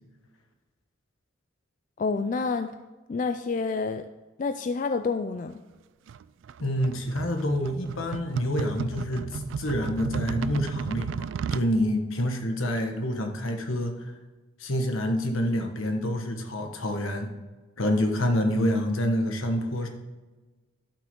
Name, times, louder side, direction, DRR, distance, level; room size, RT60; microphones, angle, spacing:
voice 1, 2.0-2.7 3.1-4.1 4.4-5.6, left 4 dB, 40° left, 8 dB, 0.3 m, -28 dB
sound 1, 6.1-11.7, right 6 dB, 65° right, 0.3 m, -34 dB
voice 2, 6.6-13.9 14.6-17.3 17.8-19.9, left 1 dB, 80° left, 4 dB, 1.3 m, -27 dB
11.5 x 5.8 x 3.7 m, 1.2 s
head